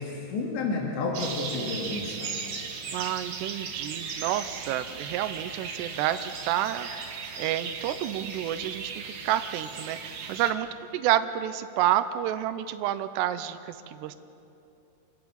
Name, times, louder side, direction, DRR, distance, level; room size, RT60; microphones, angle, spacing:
voice 1, 0.0-2.4, left 3 dB, 65° left, -1 dB, 4.1 m, -31 dB
sound 1, 1.1-10.5, right 5 dB, 55° right, 3.4 m, -37 dB
voice 2, 2.9-7.1 7.4-14.2, right 12 dB, 85° right, 10 dB, 2.5 m, -29 dB
27.5 x 14.0 x 8.7 m, 2.8 s
omnidirectional pair, 5.6 m